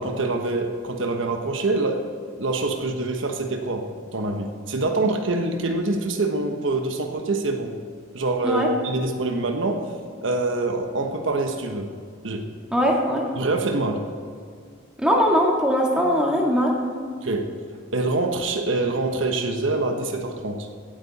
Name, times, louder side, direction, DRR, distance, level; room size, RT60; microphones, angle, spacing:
voice 1, 0.0-2.0 2.4-3.9 4.1-7.7 8.1-9.9 10.2-11.9 12.2-12.5 13.4-14.0 17.2-17.4 17.9-20.7, right 2 dB, 75° right, 4 dB, 1.2 m, -25 dB
voice 2, 12.7-13.3 15.0-17.0, equal, 5° right, -2 dB, 2.0 m, -21 dB
17.0 x 8.9 x 4.2 m, 2.1 s
head